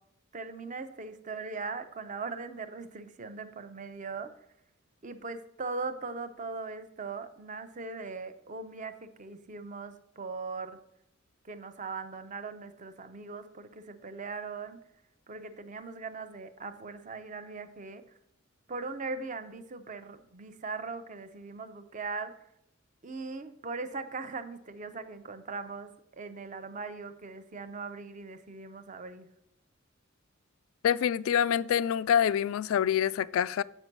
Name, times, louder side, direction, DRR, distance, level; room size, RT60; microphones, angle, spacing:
voice 1, 0.3-4.3 5.0-10.8 11.4-14.8 15.3-18.0 18.7-22.3 23.0-29.3, right 4 dB, 35° right, 0.7 m, -40 dB
voice 2, 30.8-33.6, left 9 dB, 75° left, 0.3 m, -26 dB
7.9 x 5.2 x 6.0 m
head